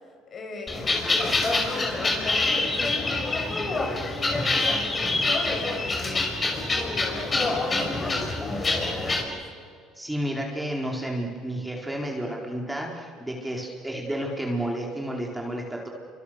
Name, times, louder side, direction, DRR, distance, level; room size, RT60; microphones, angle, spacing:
voice 1, 0.3-6.1 6.4-9.4, left 3 dB, 45° left, 2 dB, 7.5 m, -39 dB
sound 1, 0.7-9.2, left 2 dB, 25° left, 6.0 m, -26 dB
voice 2, 10.0-15.9, right 1 dB, 5° right, 0 dB, 4.5 m, -31 dB
29.5 x 25.5 x 6.7 m, 2.1 s
supercardioid pair, 90°, 0 cm